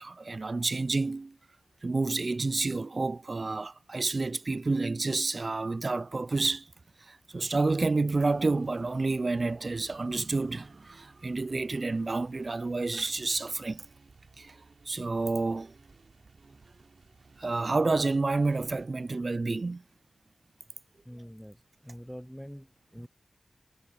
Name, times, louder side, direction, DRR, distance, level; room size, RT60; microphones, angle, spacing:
voice 1, 0.0-1.4 1.8-6.7 7.0-13.9 14.4-14.6 14.9-15.7 17.4-19.8, right 3 dB, 45° right, 0.3 m, -29 dB
sound 1, 8.1-18.9, right 4 dB, 60° right, 4.8 m, -58 dB
voice 2, 21.0-23.1, equal, ahead, 0.7 m, -45 dB
wide cardioid pair, 65°, 0 cm